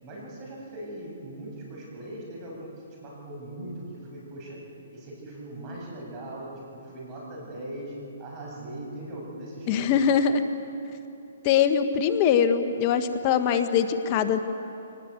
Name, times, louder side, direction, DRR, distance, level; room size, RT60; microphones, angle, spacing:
voice 1, 0.0-2.7 3.0-4.6 4.9-10.0, right 1 dB, 30° right, -2 dB, 7.5 m, -39 dB
voice 2, 9.7-10.4 11.4-14.4, left 7 dB, 35° left, 9 dB, 1.2 m, -22 dB
23.5 x 19.0 x 8.3 m, 2.8 s
hypercardioid pair, 140°, 0 cm